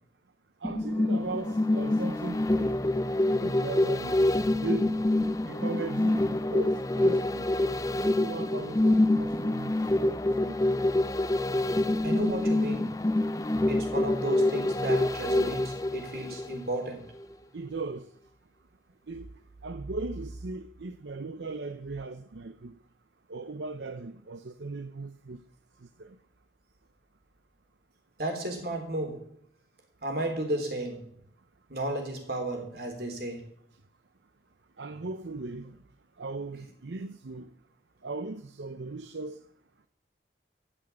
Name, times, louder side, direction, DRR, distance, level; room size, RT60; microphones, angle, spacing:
sound 1, 0.6-16.9 17.2-17.3, left 1 dB, 20° left, 0.4 m, -26 dB
voice 1, 0.6-2.7 3.3-4.3 4.6-5.1 5.4-7.5 7.9-9.7 10.0-10.6 17.5-18.1 19.1-19.3 19.6-22.7 23.3-25.4 26.0-26.1 34.8-35.7 36.2-37.5 38.0-39.4, right 3 dB, 80° right, 0.7 m, -38 dB
voice 2, 12.0-13.0 13.7-17.1 28.2-29.3 30.0-31.1 31.7-33.4, right 1 dB, 60° right, 3.8 m, -33 dB
15.0 x 6.3 x 9.6 m
head